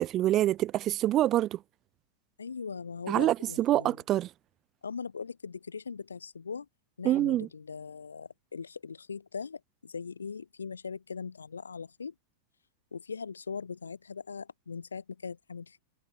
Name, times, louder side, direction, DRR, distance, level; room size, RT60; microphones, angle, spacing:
voice 1, 0.0-1.6 3.1-4.3 7.0-7.5, right 13 dB, 35° right, 1.9 m, -26 dB
voice 2, 2.4-4.0 4.8-6.7 7.0-12.1 12.9-15.8, left 5 dB, 75° left, 6.1 m, -40 dB
figure-of-eight pair, 90°, 0 cm